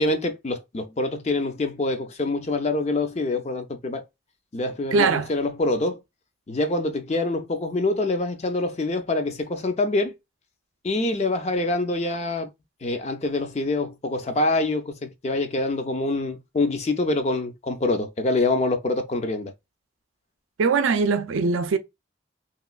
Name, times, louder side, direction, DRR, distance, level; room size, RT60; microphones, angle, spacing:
voice 1, 0.0-4.0 4.5-6.0 6.5-10.1 10.8-12.5 12.8-19.5, left 2 dB, 35° left, 0.4 m, -25 dB
voice 2, 4.9-5.3 20.6-21.8, right 4 dB, 90° right, 0.4 m, -21 dB
3.0 x 2.9 x 2.3 m
head